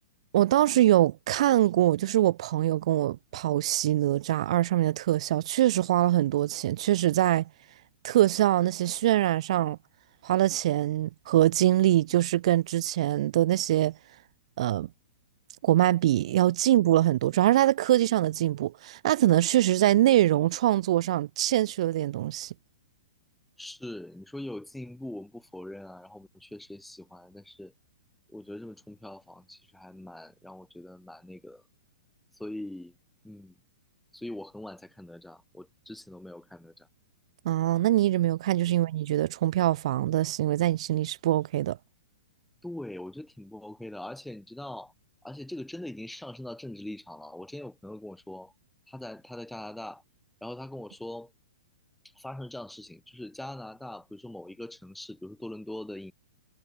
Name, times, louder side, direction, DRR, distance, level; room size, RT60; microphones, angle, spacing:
voice 1, 0.3-7.4 8.0-9.8 10.2-13.9 14.6-14.9 15.6-22.5 37.4-41.8, right 13 dB, 55° right, 0.6 m, -23 dB
voice 2, 23.6-27.7 28.3-31.6 32.4-32.9 33.2-33.5 34.1-36.9 38.7-38.8 42.6-44.9 45.2-48.5 48.9-50.0 50.4-51.3 52.1-56.1, left 1 dB, ahead, 6.4 m, -42 dB
hypercardioid pair, 145°, 4 cm